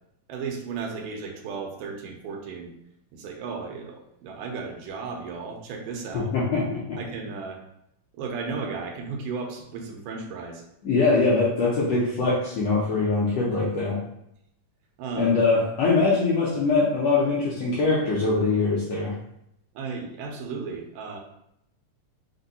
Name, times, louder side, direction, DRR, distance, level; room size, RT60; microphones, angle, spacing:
voice 1, 0.3-2.7 3.1-6.3 7.0-7.6 8.1-10.6 15.0-15.3 19.8-21.2, right 4 dB, 80° right, 1 dB, 2.2 m, -34 dB
voice 2, 6.1-6.8 10.8-14.0 15.1-19.1, left 3 dB, 80° left, -6 dB, 1.5 m, -22 dB
5.2 x 2.3 x 4.0 m, 0.78 s
omnidirectional pair, 3.8 m